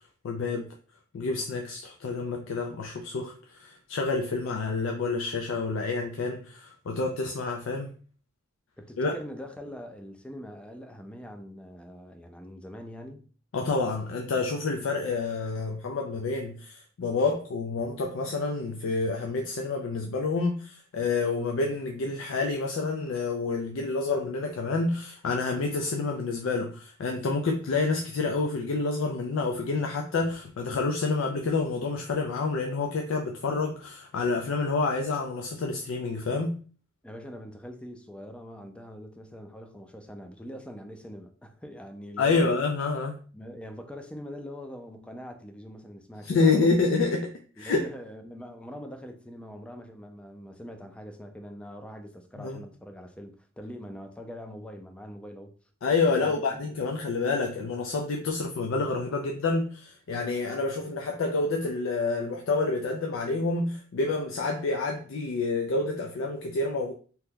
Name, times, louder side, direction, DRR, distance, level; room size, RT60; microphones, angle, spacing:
voice 1, 0.2-0.7 1.1-7.9 9.0-9.2 13.5-36.6 42.2-43.2 46.2-47.9 52.4-52.6 55.8-66.9, left 3 dB, 85° left, 0.4 m, -28 dB
voice 2, 8.8-13.3 37.0-42.5 43.3-46.8 47.6-55.5 56.2-56.6, equal, 5° left, 0.4 m, -43 dB
2.8 x 2.2 x 3.5 m
head